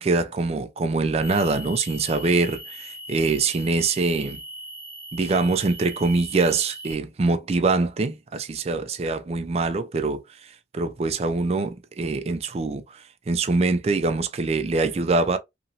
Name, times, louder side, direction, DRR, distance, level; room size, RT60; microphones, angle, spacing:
voice 1, 0.0-4.4 5.1-15.4, right 3 dB, 35° right, 0.4 m, -24 dB
sound 1, 1.2-6.9, equal, 5° right, 1.2 m, -40 dB
2.9 x 2.7 x 2.6 m
head